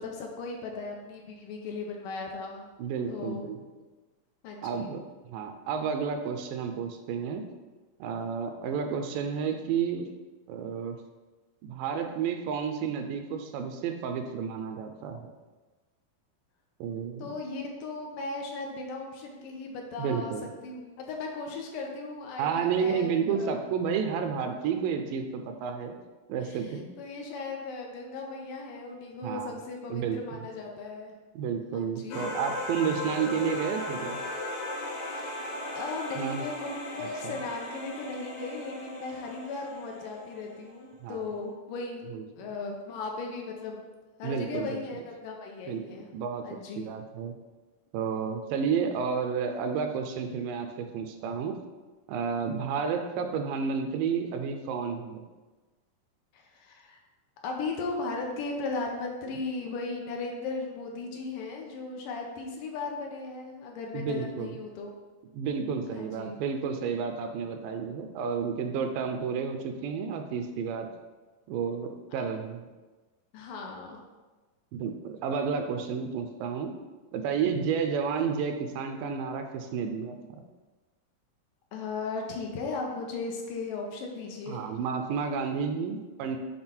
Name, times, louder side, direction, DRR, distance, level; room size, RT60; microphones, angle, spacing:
voice 1, 0.0-2.7 3.1-3.5 4.4-4.9 17.2-20.3 20.6-23.6 26.4-31.1 31.7-32.2 34.8-35.3 35.8-43.8 44.2-46.1 46.4-46.8 56.3-57.0 57.4-64.9 65.9-66.4 73.3-74.0 81.7-84.7, left 3 dB, 80° left, 1 dB, 2.2 m, -37 dB
voice 2, 2.8-3.6 4.6-7.5 8.0-10.0 10.5-11.0 11.6-15.2 16.8-17.3 20.0-20.5 22.4-26.0 26.3-26.8 29.2-29.6 29.9-30.4 31.4-34.2 36.2-36.4 37.0-37.4 41.0-41.2 42.1-42.5 44.2-44.8 45.7-45.8 46.1-46.4 46.8-47.3 47.9-51.5 52.1-55.2 63.9-64.5 65.3-70.9 71.5-72.7 74.7-76.7 77.1-80.2 84.5-86.4, right 6 dB, 80° right, 5 dB, 2.1 m, -31 dB
sound 1, 32.1-40.7, left 2 dB, 60° left, 2.0 m, -37 dB
7.8 x 3.6 x 4.3 m, 1.2 s
omnidirectional pair, 4.1 m